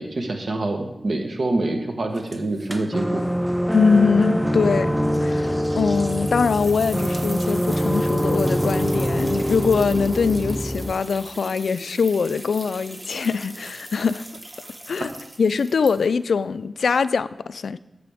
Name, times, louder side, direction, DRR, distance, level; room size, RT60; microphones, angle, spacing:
voice 1, 0.0-3.3, right 2 dB, 65° right, 3 dB, 1.1 m, -26 dB
sound 1, 2.1-3.3 3.5-3.6 5.0-16.3, right 1 dB, 25° right, 1.3 m, -40 dB
sound 2, 2.9-10.9, equal, 5° right, 0.5 m, -24 dB
voice 2, 3.7-4.9 5.2-14.3 14.9-15.1 15.4-17.8, left 5 dB, 85° left, 15 dB, 0.4 m, -22 dB
13.0 x 6.7 x 3.5 m, 0.99 s
cardioid pair, 60°, 0 cm